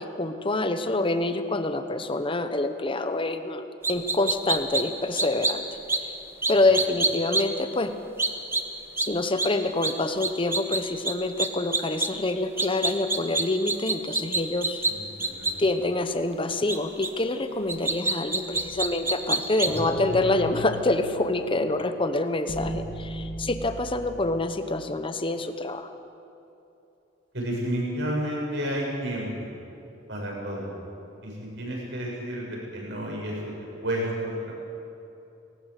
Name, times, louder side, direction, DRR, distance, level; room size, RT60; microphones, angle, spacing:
voice 1, 0.0-3.6 3.9-5.6 6.0-6.1 6.5-7.9 9.0-14.8 15.6-25.9, left 2 dB, 25° left, 8 dB, 1.1 m, -26 dB
sound 1, 3.8-4.8 5.2-5.5 5.9-6.0 6.4-7.4 8.2-8.6 9.0-9.1 9.4-9.5 9.8-9.9 10.2-10.8 11.0-11.1 11.4-12.1 12.6-14.9 15.2-15.5 16.7-16.8 17.0-17.1 17.7-19.8, right 3 dB, 15° right, 1.1 m, -25 dB
voice 2, 15.0-15.6 27.3-29.5 30.1-30.7 31.2-33.5 33.8-34.5, equal, 65° right, -2 dB, 7.0 m, -31 dB
sound 2, 18.5-24.4, left 1 dB, 10° left, 3.0 m, -36 dB
19.5 x 18.5 x 8.3 m, 2.8 s
head